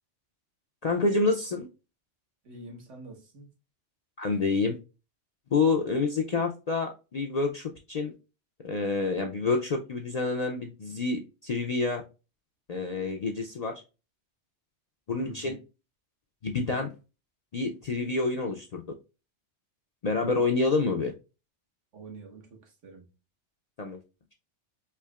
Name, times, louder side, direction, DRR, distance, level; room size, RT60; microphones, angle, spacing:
voice 1, 0.8-1.7 4.2-4.7 5.5-8.1 8.6-12.0 12.7-13.7 15.1-15.6 16.4-16.9 17.5-18.8 20.0-21.1 23.8-24.0, left 3 dB, 55° left, 0.4 m, -28 dB
voice 2, 2.4-3.5 15.2-15.6 21.9-23.1, right 3 dB, 85° right, 1.5 m, -46 dB
4.5 x 2.8 x 2.3 m
omnidirectional pair, 1.2 m